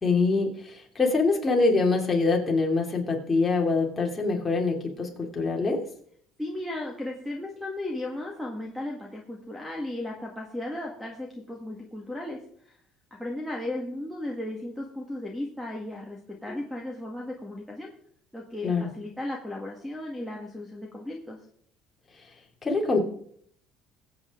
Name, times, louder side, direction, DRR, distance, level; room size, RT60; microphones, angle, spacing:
voice 1, 0.0-5.8 18.6-18.9 22.6-23.0, left 3 dB, 15° left, 0 dB, 2.7 m, -24 dB
voice 2, 6.4-12.4 12.6-12.8 13.1-17.9 18.3-21.4, left 1 dB, ahead, 0 dB, 1.7 m, -35 dB
21.5 x 8.3 x 3.7 m, 0.63 s
cardioid pair, 145°, 0 cm